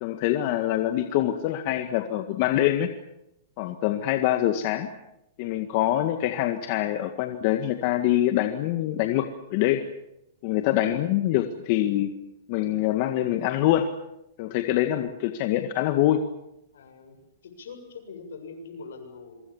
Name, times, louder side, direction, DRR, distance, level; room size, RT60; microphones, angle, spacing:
voice 1, 0.0-2.9 3.6-4.9 5.4-9.8 10.4-12.1 12.5-13.9 14.4-16.2, left 13 dB, 50° left, 7 dB, 1.9 m, -25 dB
voice 2, 16.7-19.4, left 4 dB, 80° left, 7 dB, 7.5 m, -43 dB
26.5 x 24.5 x 7.3 m, 0.84 s
hypercardioid pair, 140°, 0 cm